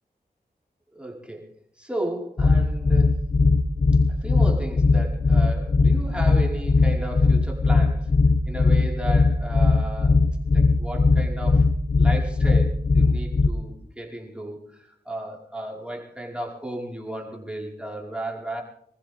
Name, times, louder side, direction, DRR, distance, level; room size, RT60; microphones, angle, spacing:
voice 1, 0.9-1.4 1.8-3.3 4.2-8.1 8.4-10.2 10.5-11.7 12.0-18.6, right 1 dB, 5° right, -2 dB, 5.0 m, -34 dB
sound 1, 2.4-13.5, left 3 dB, 45° left, 1.0 m, -19 dB
25.5 x 15.0 x 3.7 m, 0.69 s
cardioid pair, 60°, 17 cm